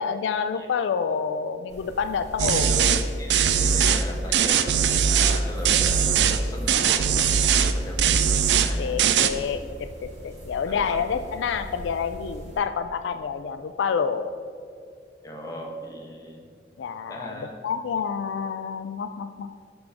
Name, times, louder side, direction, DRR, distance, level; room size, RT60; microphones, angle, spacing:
voice 1, 0.0-2.8 8.5-9.6 10.0-14.3 16.8-19.6, left 6 dB, 80° left, 10 dB, 0.3 m, -28 dB
sound 1, 1.7-12.6, equal, 40° right, 1.8 m, -42 dB
voice 2, 2.4-9.0 10.7-11.0 15.2-16.5 17.1-17.6, equal, 20° left, 0 dB, 1.0 m, -37 dB
sound 2, 2.4-3.0 3.3-4.0 4.3-5.4 5.6-6.4 6.7-7.7 8.0-8.7 9.0-9.3, right 7 dB, 70° right, 0.4 m, -20 dB
6.0 x 4.9 x 5.9 m, 2.3 s
head